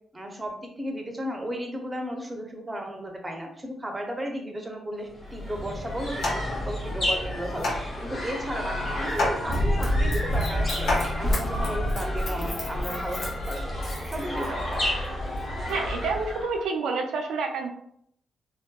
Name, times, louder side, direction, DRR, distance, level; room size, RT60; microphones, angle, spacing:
voice 1, 0.1-13.6 14.1-14.9, equal, 20° right, 2 dB, 0.6 m, -34 dB
sound 1, 5.1-16.7, left 1 dB, 35° left, 1.3 m, -32 dB
Chopping carrot, 5.3-11.7, left 2 dB, 85° left, 0.9 m, -32 dB
Run, 9.5-14.7 15.3-15.4, equal, 65° left, 0.6 m, -28 dB
voice 2, 15.7-17.7, right 4 dB, 85° right, 3 dB, 0.3 m, -28 dB
2.6 x 2.1 x 2.2 m, 0.70 s
cardioid pair, 70°, 0 cm